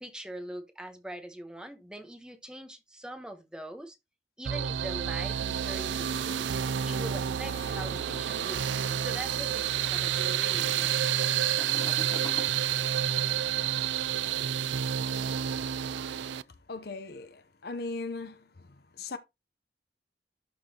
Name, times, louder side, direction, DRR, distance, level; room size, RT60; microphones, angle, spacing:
voice 1, 0.0-4.0 4.4-6.5 6.8-11.3, right 1 dB, 5° right, 1.1 m, -43 dB
sound 1, 4.4-16.4, right 9 dB, 85° right, 0.4 m, -29 dB
Toilet flush, 6.8-13.2 13.5-15.1, left 2 dB, 20° left, 0.8 m, -47 dB
voice 2, 16.0-16.4 16.7-18.7 18.9-19.2, left 3 dB, 60° left, 0.8 m, -39 dB
11.5 x 4.1 x 2.9 m
head